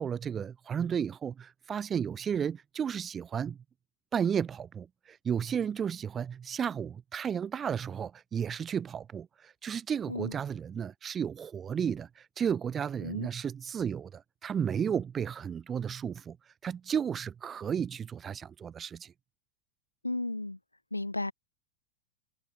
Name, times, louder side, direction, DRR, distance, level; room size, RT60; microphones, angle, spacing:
voice 1, 0.0-3.6 4.1-12.1 12.4-16.4 16.6-19.1, right 8 dB, 20° right, 0.7 m, -33 dB
voice 2, 20.0-20.6 20.9-21.3, left 2 dB, 85° left, 0.8 m, -34 dB
figure-of-eight pair, 90°, 0 cm